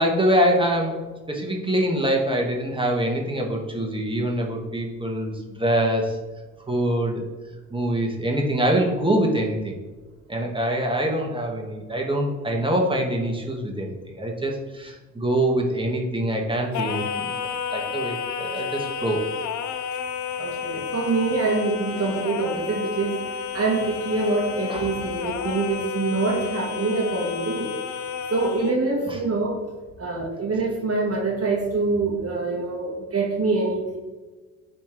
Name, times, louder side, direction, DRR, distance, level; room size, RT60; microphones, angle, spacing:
voice 1, 0.0-6.2 6.7-7.2 7.7-9.8 10.3-19.2 24.7-25.0 29.1-29.2, right 1 dB, 10° right, 0 dB, 1.9 m, -24 dB
Singing, 16.7-28.8, left 7 dB, 45° left, 0.7 m, -31 dB
voice 2, 20.4-23.2 23.5-27.8 28.3-29.6 30.0-34.0, right 3 dB, 35° right, -1 dB, 1.8 m, -25 dB
10.5 x 4.3 x 3.4 m, 1.3 s
hypercardioid pair, 60°, 43 cm